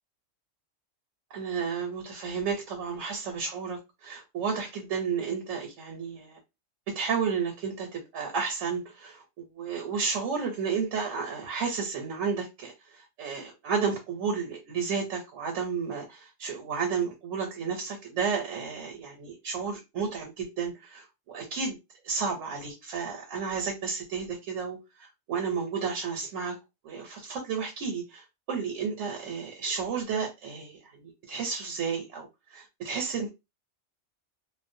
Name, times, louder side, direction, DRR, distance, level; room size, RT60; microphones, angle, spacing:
voice 1, 1.3-6.4 6.9-21.8 22.0-26.6 26.8-33.3, right 5 dB, 85° right, 1.0 m, -32 dB
2.5 x 2.0 x 2.6 m
omnidirectional pair, 1.3 m